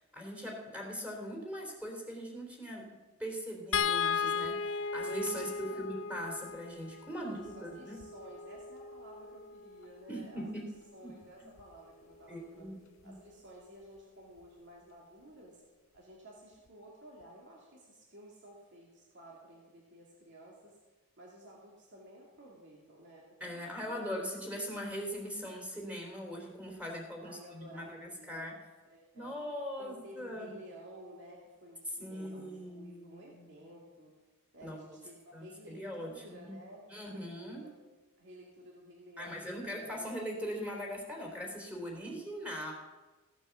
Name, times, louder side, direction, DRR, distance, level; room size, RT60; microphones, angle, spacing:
voice 1, 0.0-2.9 3.2-8.0 10.1-10.7 11.0-11.1 12.3-12.8 13.0-13.1 23.4-28.5 29.1-30.5 32.0-33.6 34.6-34.8 35.3-36.6 36.9-37.7 39.2-42.7, equal, 5° right, -2 dB, 3.2 m, -41 dB
sound 1, 3.7-10.0 11.6-11.7 12.1-12.3, left 6 dB, 60° left, 0.7 m, -36 dB
voice 2, 5.4-5.8 7.2-12.7 13.0-15.6 15.9-20.8 21.2-23.2 23.7-24.0 27.2-28.4 28.8-29.3 29.7-34.1 34.5-37.7 38.2-40.1 42.0-42.2, right 1 dB, 55° right, -3 dB, 2.4 m, -53 dB
15.5 x 9.0 x 7.0 m, 1.2 s
head